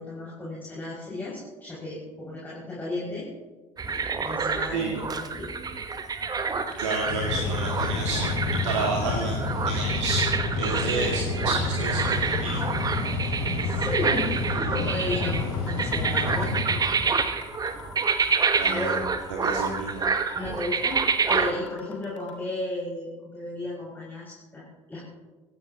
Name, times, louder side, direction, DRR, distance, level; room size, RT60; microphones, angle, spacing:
voice 1, 0.0-3.3 3.8-5.5 10.8-11.1 13.6-16.5 18.6-18.9 20.3-25.0, left 1 dB, 10° left, -7 dB, 6.2 m, -34 dB
sound 1, 3.8-21.5, right 5 dB, 25° right, 1.2 m, -28 dB
voice 2, 4.7-5.0 6.8-8.3 8.6-9.4 9.6-10.3 10.6-12.6 18.6-19.0 19.4-20.1, right 3 dB, 65° right, -1 dB, 2.0 m, -30 dB
Mechanical fan, 6.7-17.3, left 3 dB, 50° left, 5.6 m, -29 dB
sound 2, 15.3-16.5 16.9-17.0 17.3-18.5 18.9-19.0 19.3-20.5 20.9-21.0 21.3-22.3, left 5 dB, 80° left, 2.6 m, -45 dB
25.5 x 16.0 x 2.9 m, 1.3 s
figure-of-eight pair, 60°, 16 cm